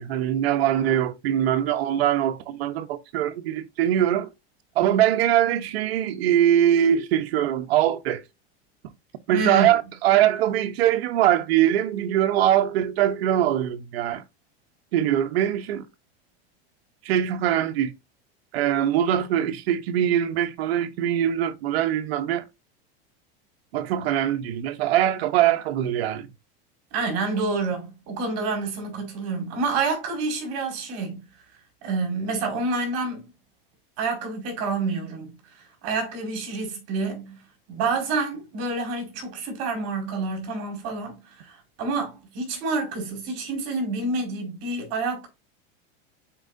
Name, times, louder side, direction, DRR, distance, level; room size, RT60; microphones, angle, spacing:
voice 1, 0.0-4.3 4.8-8.2 9.3-14.2 14.9-15.8 17.0-17.9 18.5-22.4 23.7-26.3, right 11 dB, 85° right, 1.0 m, -22 dB
voice 2, 9.3-9.7 26.9-31.2 31.8-33.3 34.0-37.4 37.7-45.3, right 3 dB, 55° right, 4.8 m, -28 dB
9.0 x 4.6 x 2.6 m
supercardioid pair, 130°, 30 cm